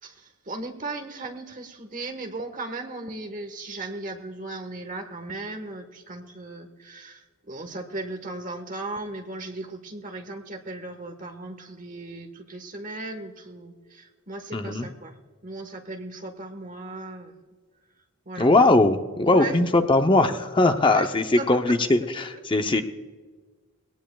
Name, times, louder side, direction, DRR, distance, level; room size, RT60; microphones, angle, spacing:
voice 1, 0.0-15.2 15.4-17.3 18.2-18.5 18.9-19.0 19.2-19.6 20.8-21.1 21.4-21.7, right 2 dB, 35° right, 5 dB, 1.3 m, -37 dB
voice 2, 14.5-14.9 18.4-22.8, left 2 dB, 20° left, 7 dB, 0.6 m, -20 dB
20.0 x 18.0 x 2.3 m, 1.5 s
head